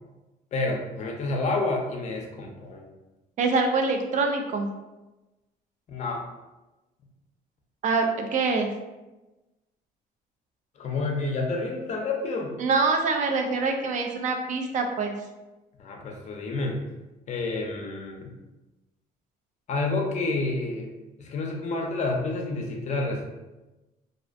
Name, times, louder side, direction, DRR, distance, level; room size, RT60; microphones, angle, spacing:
voice 1, 0.5-2.8 5.9-6.2 10.8-12.5 15.8-16.8 17.3-18.3 19.7-20.9 21.2-23.4, left 3 dB, 45° left, 1 dB, 0.5 m, -29 dB
voice 2, 3.4-4.7 7.8-8.7 12.6-15.2, right 4 dB, 45° right, 4 dB, 0.4 m, -25 dB
2.4 x 2.1 x 2.5 m, 1.1 s
cardioid pair, 110°, 17 cm